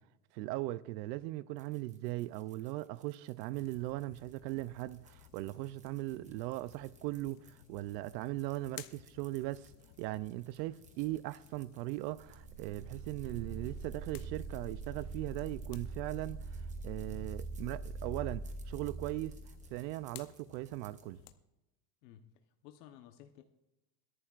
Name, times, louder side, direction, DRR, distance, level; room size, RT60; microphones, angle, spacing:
voice 1, 0.3-9.7 10.0-19.3 19.7-21.2, right 17 dB, 90° right, 0.6 m, -39 dB
sound 1, 1.6-21.1, right 5 dB, 15° right, 0.9 m, -66 dB
sound 2, 3.5-21.3, left 13 dB, 50° left, 0.8 m, -57 dB
sound 3, 12.2-19.8, right 3 dB, 40° right, 1.3 m, -43 dB
voice 2, 22.0-23.4, left 11 dB, 85° left, 1.1 m, -56 dB
22.5 x 11.5 x 2.5 m
cardioid pair, 170°, 48 cm